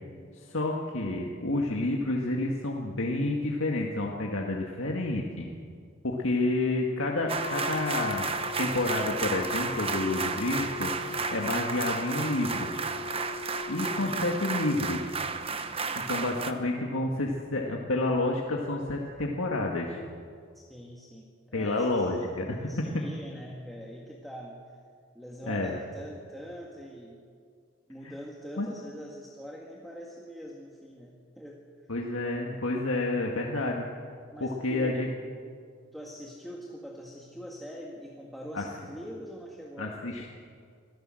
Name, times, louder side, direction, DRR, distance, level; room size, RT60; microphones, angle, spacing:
voice 1, 0.3-5.5 6.0-8.3 8.6-10.9 11.3-12.7 13.7-15.1 16.1-20.0 21.5-23.0 25.5-25.7 28.0-28.1 28.6-28.7 31.9-33.8 34.4-35.1 38.5-38.7 39.8-40.3, left 2 dB, 75° left, 0 dB, 1.9 m, -29 dB
sound 1, 7.3-16.5, right 5 dB, 25° right, 1.0 m, -33 dB
Wind instrument woodwind instrument, 7.4-15.3, left 5 dB, 35° left, 1.3 m, -40 dB
voice 2, 15.9-16.3 20.5-22.2 22.6-24.6 25.2-27.2 27.9-31.6 34.3-35.1 35.9-40.3, equal, ahead, -3 dB, 1.8 m, -43 dB
26.0 x 16.0 x 7.7 m, 2.1 s
head